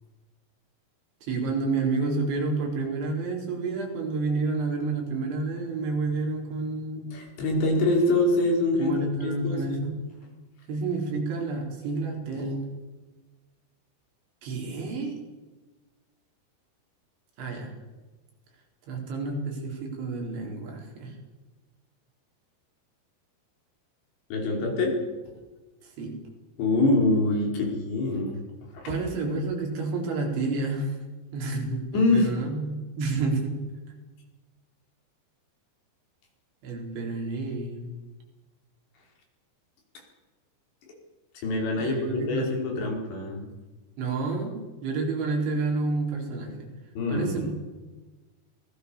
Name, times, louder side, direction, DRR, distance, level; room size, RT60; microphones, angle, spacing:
voice 1, 1.2-7.1 8.8-10.0 10.7-12.7 14.4-15.2 17.4-17.7 18.9-21.1 26.0-26.2 28.9-30.9 31.3-33.6 36.6-37.9 41.8-42.5 44.0-46.7 47.1-47.6, right 3 dB, 85° right, 1 dB, 6.7 m, -29 dB
voice 2, 7.1-8.9 9.2-9.8 12.4-12.5 24.3-25.0 26.6-28.4 28.7-28.9 31.9-32.3 40.9-41.0 41.4-43.4 46.9-47.5, left 2 dB, 70° left, 1 dB, 6.8 m, -25 dB
25.5 x 19.5 x 7.1 m, 1.2 s
omnidirectional pair, 5.2 m